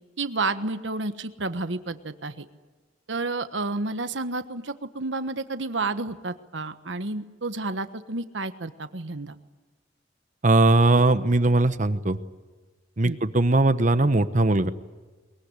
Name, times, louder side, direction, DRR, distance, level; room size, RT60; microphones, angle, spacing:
voice 1, 0.2-2.4 3.1-9.4 13.0-13.2, right 3 dB, 70° right, 10 dB, 1.3 m, -30 dB
voice 2, 10.4-12.2 13.0-14.7, right 2 dB, 40° right, 11 dB, 1.0 m, -20 dB
22.0 x 22.0 x 9.7 m, 1.3 s
head